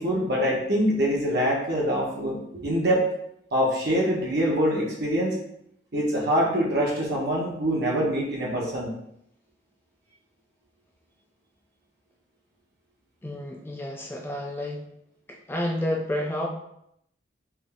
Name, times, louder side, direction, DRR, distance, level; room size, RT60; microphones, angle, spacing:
voice 1, 0.0-3.1 3.5-5.4 5.9-8.9, equal, 55° right, -3 dB, 1.0 m, -24 dB
voice 2, 13.2-14.9 15.3-16.5, left 1 dB, 10° left, 0 dB, 0.3 m, -30 dB
3.7 x 3.4 x 2.2 m, 0.75 s
head